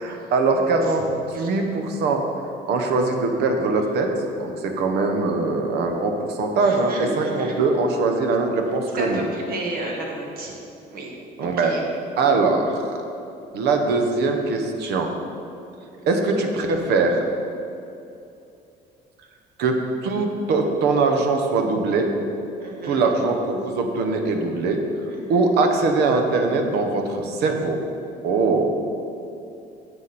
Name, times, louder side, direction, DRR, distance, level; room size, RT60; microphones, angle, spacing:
voice 1, 0.0-2.2 2.7-4.1 4.4-9.2 11.4-11.7 12.2-12.9 13.5-15.1 16.0-17.2 19.6-19.8 20.0-22.1 22.8-24.8 25.3-27.8 28.2-28.7, right 3 dB, 80° right, 4 dB, 1.1 m, -22 dB
voice 2, 6.6-7.6 9.0-10.6 10.9-11.1 11.4-11.9 16.0-16.4 22.6-23.1 25.1-25.5, right 2 dB, 60° right, 0 dB, 1.8 m, -32 dB
9.8 x 7.1 x 4.2 m, 2.7 s
cardioid pair, 110°, 17 cm